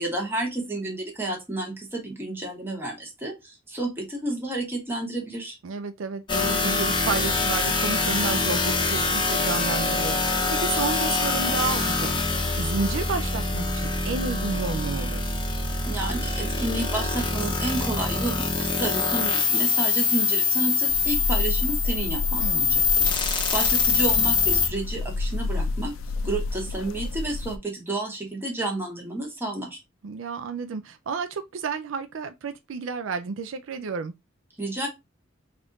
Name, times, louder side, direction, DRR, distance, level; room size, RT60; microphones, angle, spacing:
voice 1, 0.0-5.6 15.8-25.9 26.2-29.8 34.6-34.9, right 2 dB, 10° right, 1.1 m, -31 dB
voice 2, 5.6-15.2 22.4-22.8 30.0-34.1, right 5 dB, 70° right, 0.4 m, -31 dB
sound 1, 6.3-24.7, left 4 dB, 25° left, 0.8 m, -24 dB
sound 2, 20.9-27.6, left 3 dB, 85° left, 0.4 m, -30 dB
3.5 x 2.5 x 3.8 m
head